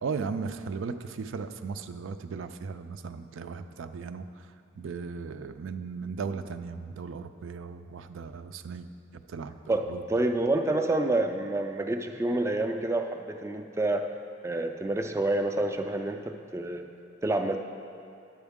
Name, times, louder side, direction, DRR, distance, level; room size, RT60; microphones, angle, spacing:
voice 1, 0.0-4.5 4.8-10.0, right 5 dB, 90° right, 9 dB, 0.4 m, -37 dB
voice 2, 9.7-14.1 14.4-16.9 17.2-17.6, right 2 dB, 15° right, 4 dB, 0.3 m, -28 dB
10.5 x 7.9 x 3.6 m, 2.5 s
head